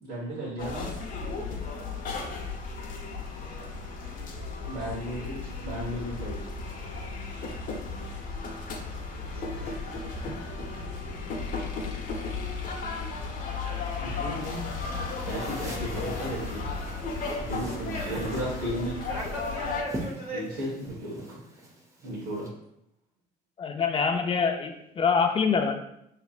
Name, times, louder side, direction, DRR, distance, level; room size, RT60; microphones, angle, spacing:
voice 1, 0.0-0.9 4.7-6.4 14.0-14.7 15.2-16.6 17.5-18.9 20.3-21.4 22.0-22.5, equal, 80° right, -7 dB, 1.5 m, -34 dB
sound 1, 0.6-19.8, left 4 dB, 55° left, 0.9 m, -35 dB
voice 2, 9.1-10.2 11.5-11.7 17.9-18.5 19.1-20.5, right 1 dB, 40° right, -5 dB, 1.2 m, -39 dB
sound 2, 14.4-22.5, right 1 dB, 20° right, 0.9 m, -44 dB
voice 3, 23.6-25.7, left 5 dB, 30° left, 5 dB, 0.6 m, -25 dB
5.9 x 3.4 x 2.4 m, 0.78 s
cardioid pair, 110°, 17 cm